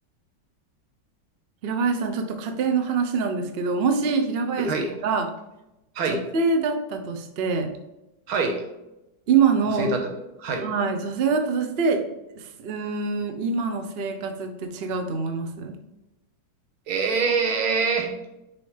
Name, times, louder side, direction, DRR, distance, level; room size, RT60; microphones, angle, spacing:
voice 1, 1.6-4.7 5.0-5.3 6.1-7.7 9.3-9.9 10.6-12.0 12.3-15.8, right 5 dB, 65° right, 6 dB, 0.6 m, -25 dB
voice 2, 4.6-4.9 6.0-6.2 8.3-8.6 9.8-10.0 10.4-10.7 16.9-18.1, right 4 dB, 85° right, 2 dB, 2.0 m, -24 dB
6.2 x 4.8 x 3.3 m, 0.93 s
omnidirectional pair, 2.2 m